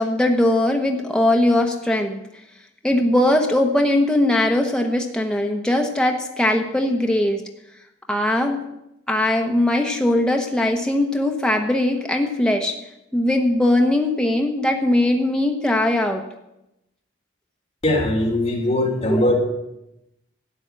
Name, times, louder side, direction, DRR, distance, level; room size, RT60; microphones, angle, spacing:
voice 1, 0.0-2.2 2.8-7.4 8.1-8.6 9.1-12.8 13.1-16.2 19.1-19.2, left 1 dB, 5° left, 2 dB, 0.9 m, -20 dB
voice 2, 17.8-19.3, left 1 dB, 30° left, -2 dB, 3.1 m, -20 dB
12.5 x 9.0 x 7.3 m, 0.87 s
head